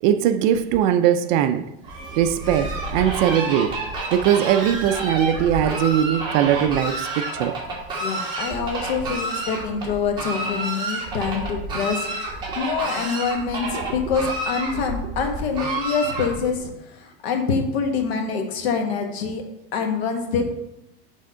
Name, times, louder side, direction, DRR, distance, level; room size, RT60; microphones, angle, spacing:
voice 1, 0.0-1.7 2.2-3.8 4.1-7.6 12.5-12.6, right 10 dB, 50° right, 0.4 m, -20 dB
Fowl, 1.8-16.6, right 2 dB, 15° right, 1.7 m, -29 dB
voice 2, 8.0-19.4 19.7-20.4, left 5 dB, 85° left, 1.3 m, -26 dB
6.3 x 3.5 x 5.5 m
supercardioid pair, 160°, 31 cm